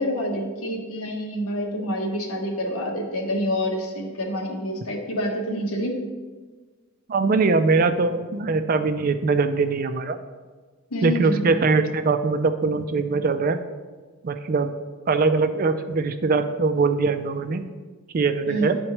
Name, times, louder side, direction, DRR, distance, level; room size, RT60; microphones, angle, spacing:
voice 1, 0.0-5.9 10.9-11.5 18.5-18.7, equal, 80° left, 1 dB, 1.1 m, -27 dB
voice 2, 7.1-10.2 11.0-13.6 14.2-14.7 15.1-17.7 18.1-18.8, right 4 dB, 40° right, 9 dB, 0.3 m, -22 dB
10.5 x 4.3 x 3.0 m, 1.4 s
head